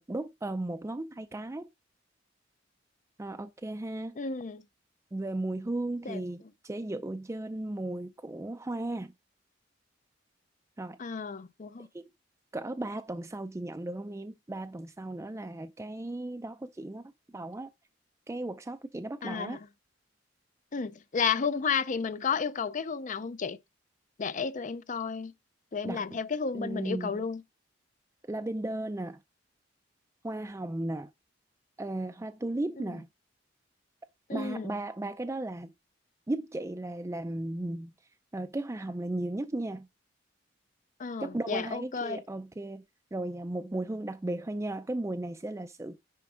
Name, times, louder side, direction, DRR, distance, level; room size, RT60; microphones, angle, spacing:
voice 1, 0.0-1.7 3.2-4.2 5.1-9.1 10.8-11.0 11.8-12.1 12.5-17.0 17.3-17.7 18.3-19.6 25.8-26.0 26.5-27.2 28.3-29.2 30.2-31.1 31.8-33.1 34.3-35.7 36.3-37.9 38.3-39.9 41.2-42.8 43.1-46.0, right 2 dB, 15° right, 0.4 m, -35 dB
voice 2, 4.2-4.6 6.1-6.2 11.0-11.9 19.2-19.6 20.7-23.6 24.2-25.3 25.7-27.4 32.8-32.9 34.3-34.7 41.0-42.2, left 6 dB, 45° left, 0.5 m, -32 dB
10.0 x 3.5 x 4.8 m
head